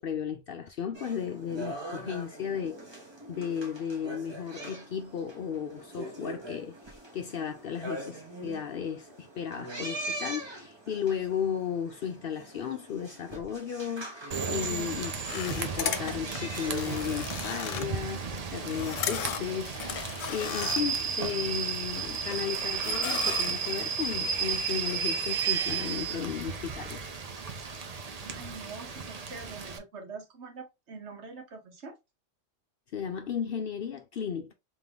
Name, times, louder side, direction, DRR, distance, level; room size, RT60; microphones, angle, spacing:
voice 1, 0.0-27.0 32.9-34.5, left 8 dB, 60° left, 0.6 m, -35 dB
sound 1, 0.9-17.5, right 2 dB, 25° right, 0.9 m, -42 dB
Rain / Train, 14.3-29.8, right 6 dB, 45° right, 0.5 m, -33 dB
sound 2, 15.3-21.3 21.7-22.5 22.8-23.8, left 9 dB, 80° left, 1.0 m, -36 dB
voice 2, 28.2-32.0, right 4 dB, 65° right, 1.2 m, -44 dB
3.6 x 3.0 x 3.4 m
omnidirectional pair, 1.3 m